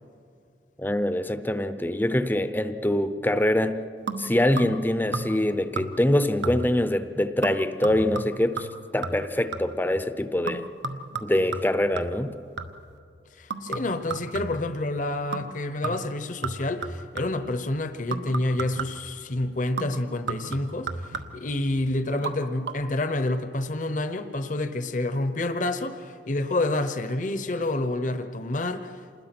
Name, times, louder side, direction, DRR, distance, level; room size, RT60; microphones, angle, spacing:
voice 1, 0.8-3.8 4.2-8.7 8.9-10.6 11.2-12.3, left 1 dB, 10° left, 11 dB, 0.7 m, -24 dB
sound 1, 4.1-4.9 5.1-5.5 5.8-6.1 6.4-6.9 7.4-9.9 10.5-12.9 13.5-14.8 15.3-15.6 15.8-17.5 18.1-19.1 19.8-21.5 22.1-22.4 22.6-22.7, right 3 dB, 80° right, 1.1 m, -34 dB
voice 2, 13.4-29.2, left 2 dB, 45° left, 9 dB, 0.9 m, -28 dB
27.5 x 20.5 x 6.0 m, 2.4 s
head